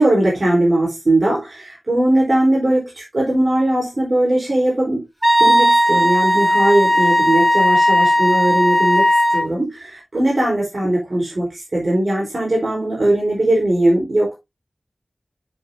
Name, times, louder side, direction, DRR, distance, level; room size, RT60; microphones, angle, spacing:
voice 1, 0.0-5.0 5.4-9.1 9.3-14.3, right 1 dB, 50° right, 3.9 m, -19 dB
Wind instrument woodwind instrument, 5.2-9.5, equal, 5° right, 1.5 m, -15 dB
7.9 x 7.7 x 2.7 m
wide cardioid pair, 80°, 0 cm